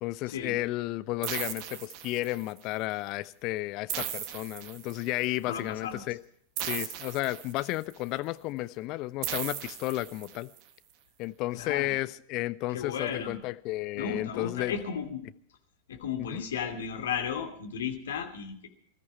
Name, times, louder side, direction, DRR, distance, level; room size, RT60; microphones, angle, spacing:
voice 1, 0.0-6.2 6.6-10.5 11.2-14.8 16.3-16.4, left 18 dB, 40° left, 15 dB, 0.7 m, -33 dB
sound 1, 1.2-2.6 3.9-5.3 6.6-7.9 9.2-10.6, right 10 dB, 40° right, 1.4 m, -37 dB
voice 2, 5.4-6.1 11.5-11.9 12.7-13.4 13.9-15.2 15.9-18.7, left 7 dB, 65° left, 4 dB, 2.7 m, -34 dB
20.5 x 14.0 x 4.6 m, 0.62 s
figure-of-eight pair, 90°, 0 cm